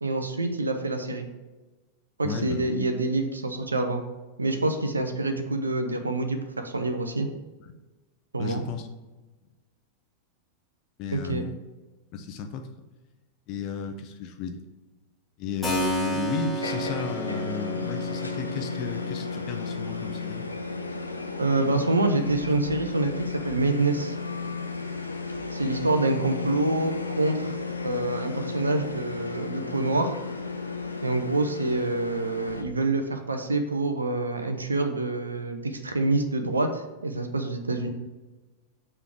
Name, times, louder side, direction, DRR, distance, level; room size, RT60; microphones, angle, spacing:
voice 1, 0.0-1.3 2.2-4.0 4.4-7.3 8.3-8.6 11.1-11.4 21.4-24.2 25.5-27.5 27.8-30.2 31.0-37.9, right 2 dB, 75° right, 6 dB, 0.6 m, -26 dB
voice 2, 2.2-2.7 8.4-8.9 11.0-11.6 12.1-12.7 13.5-14.6 15.4-20.5, left 6 dB, 40° left, 6 dB, 0.6 m, -33 dB
Keyboard (musical), 15.6-24.2, right 1 dB, 10° left, 1.3 m, -35 dB
sound 1, 16.6-32.6, left 4 dB, 80° left, 0.6 m, -34 dB
6.8 x 3.3 x 4.5 m, 1.1 s
figure-of-eight pair, 90°, 0 cm